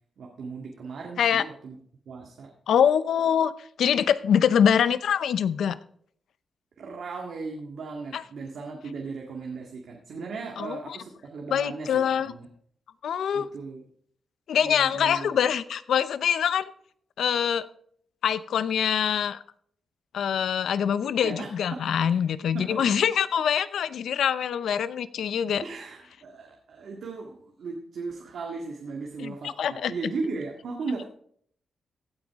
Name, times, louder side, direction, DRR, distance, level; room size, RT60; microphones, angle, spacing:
voice 1, 0.2-1.8 2.1-2.5 6.8-12.5 13.3-13.8 14.6-15.4 21.2-21.5 22.0-22.2 22.5-22.8 25.6-31.0, right 4 dB, 70° right, 0 dB, 1.9 m, -37 dB
voice 2, 2.7-3.5 3.8-5.8 8.1-8.2 10.6-10.8 11.5-12.3 13.0-13.5 14.5-16.7 17.2-17.6 18.2-19.4 20.1-25.6 29.2-29.9, left 8 dB, 85° left, 15 dB, 0.6 m, -24 dB
16.0 x 9.0 x 3.6 m, 0.62 s
wide cardioid pair, 120°, 0 cm